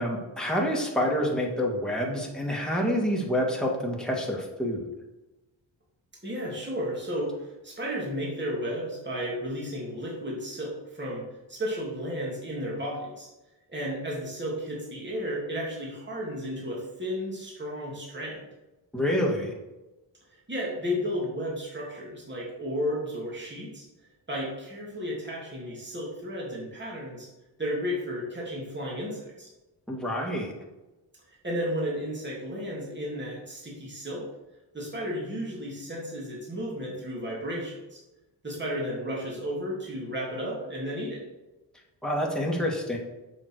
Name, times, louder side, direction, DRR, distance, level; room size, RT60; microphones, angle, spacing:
voice 1, 0.0-4.9 18.9-19.5 29.9-30.5 42.0-43.0, equal, ahead, -2 dB, 2.3 m, -27 dB
voice 2, 6.2-13.3 13.7-18.4 20.3-23.9 24.3-27.3 27.6-29.5 31.3-34.3 34.7-38.0 38.4-41.2, equal, 25° right, -4 dB, 2.9 m, -33 dB
7.7 x 6.1 x 4.8 m, 1.0 s
cardioid pair, 90°, 46 cm